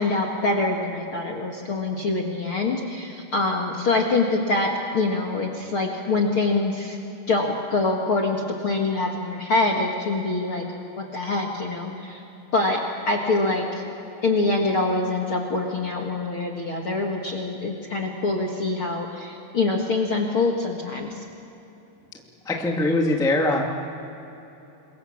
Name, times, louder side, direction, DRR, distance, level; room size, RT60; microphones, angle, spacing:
voice 1, 0.0-7.0 7.3-10.6 11.0-12.2 12.5-12.8 13.1-13.8 14.2-21.2, left 3 dB, 55° left, 2 dB, 1.5 m, -25 dB
voice 2, 22.4-23.6, left 2 dB, 5° left, 0 dB, 0.6 m, -22 dB
28.0 x 23.0 x 7.3 m, 3.0 s
omnidirectional pair, 5.0 m